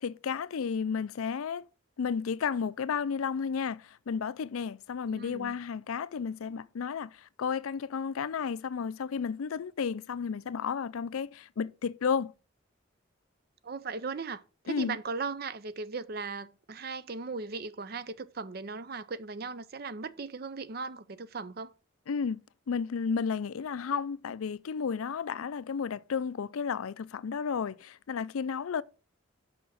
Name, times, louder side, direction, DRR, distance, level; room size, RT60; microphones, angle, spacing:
voice 1, 0.0-1.7 2.0-12.3 14.7-15.0 22.1-22.4 22.7-28.8, left 6 dB, 85° left, 0.4 m, -32 dB
voice 2, 5.1-5.5 13.6-21.7, right 4 dB, 45° right, 0.5 m, -38 dB
6.0 x 5.9 x 6.3 m
head